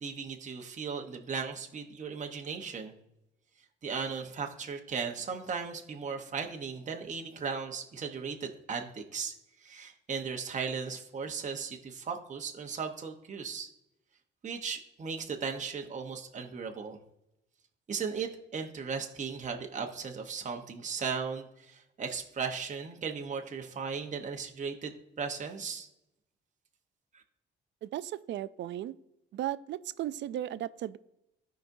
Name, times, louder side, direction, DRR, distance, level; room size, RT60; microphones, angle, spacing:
voice 1, 0.0-2.9 3.8-9.3 9.6-13.7 14.4-17.0 17.9-25.9 27.1-27.2, right 5 dB, 40° right, 3 dB, 0.9 m, -37 dB
voice 2, 27.8-28.9 29.3-31.0, right 12 dB, 65° right, 16 dB, 0.4 m, -36 dB
14.5 x 5.1 x 2.6 m, 0.88 s
cardioid pair, 90°, 20 cm